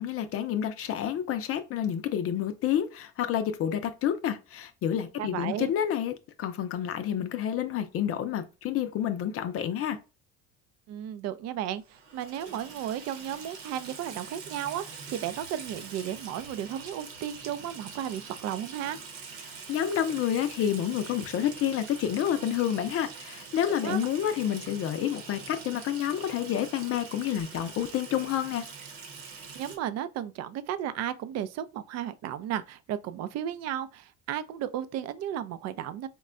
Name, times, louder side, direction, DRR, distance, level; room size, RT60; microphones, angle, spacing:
voice 1, 0.0-6.1 6.4-10.0 19.7-28.6, left 10 dB, 45° left, 0.5 m, -29 dB
voice 2, 5.2-5.7 10.9-19.0 23.8-24.0 29.5-36.1, right 10 dB, 55° right, 0.4 m, -34 dB
Water tap faucet / Sink (filling or washing), 11.9-29.8, right 5 dB, 80° right, 1.0 m, -44 dB
4.1 x 2.2 x 2.4 m
supercardioid pair, 100°, 32 cm